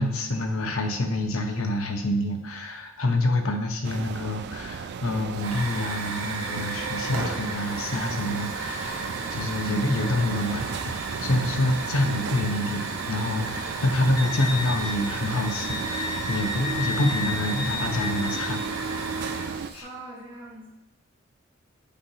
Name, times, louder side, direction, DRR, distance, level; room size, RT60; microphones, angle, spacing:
voice 1, 0.0-18.6 19.0-19.1 19.7-19.9, left 1 dB, 85° left, 4 dB, 0.9 m, -27 dB
sound 1, 3.8-19.7, right 5 dB, 55° right, 0.3 m, -35 dB
Hiss / Fire, 5.3-19.8, right 3 dB, 80° right, 1.1 m, -35 dB
Wind instrument woodwind instrument, 14.2-18.6, left 3 dB, 15° left, 0.6 m, -33 dB
voice 2, 19.8-20.7, right 2 dB, 25° right, -8 dB, 1.6 m, -42 dB
8.4 x 5.5 x 2.8 m, 0.95 s
head